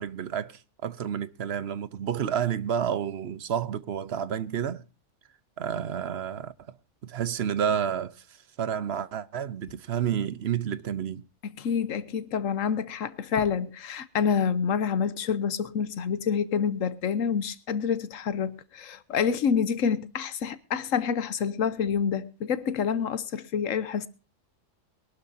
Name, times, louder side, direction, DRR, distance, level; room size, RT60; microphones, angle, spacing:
voice 1, 0.0-4.8 5.6-6.5 7.0-8.1 8.6-11.2, right 8 dB, 60° right, 1.0 m, -30 dB
voice 2, 11.6-24.1, left 7 dB, 90° left, 1.3 m, -27 dB
22.5 x 12.5 x 2.7 m
omnidirectional pair, 1.3 m